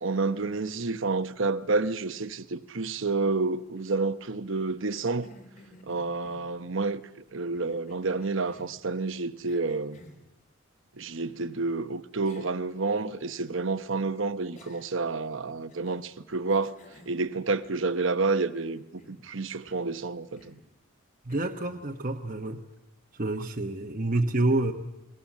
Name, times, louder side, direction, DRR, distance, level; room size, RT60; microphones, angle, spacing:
voice 1, 0.0-5.3 5.8-7.0 7.3-10.0 11.0-16.7 17.1-18.8 19.1-20.6, right 3 dB, 60° right, 1.0 m, -29 dB
Cough, 4.6-6.8 7.5-8.8 9.5-10.3 11.6-11.8 12.2-12.6 13.0-13.1 14.5-15.1 15.7-16.1 16.5-17.9 18.2-19.3 19.7-20.0 20.4-20.7 21.3-21.8, left 1 dB, 35° left, 3.8 m, -55 dB
voice 2, 21.2-22.6 23.1-24.7, right 2 dB, 40° right, 1.1 m, -28 dB
28.5 x 21.0 x 7.4 m
head